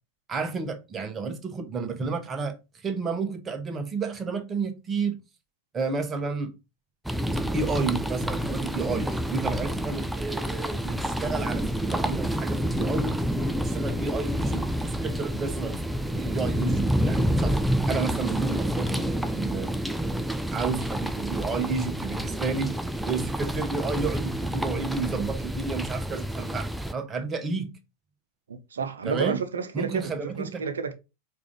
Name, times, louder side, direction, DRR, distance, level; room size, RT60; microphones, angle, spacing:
voice 1, 0.3-2.6 2.8-5.2 5.7-6.5 7.4-13.2 13.5-15.8 16.1-17.6 17.9-19.8 20.5-22.8 23.1-27.8 29.0-29.4 29.7-30.6, right 4 dB, 20° right, 0.8 m, -31 dB
sound 1, 7.0-26.9, equal, ahead, 0.3 m, -28 dB
voice 2, 28.5-30.9, right 5 dB, 70° right, 0.6 m, -31 dB
4.7 x 2.5 x 3.6 m
figure-of-eight pair, 90°, 0 cm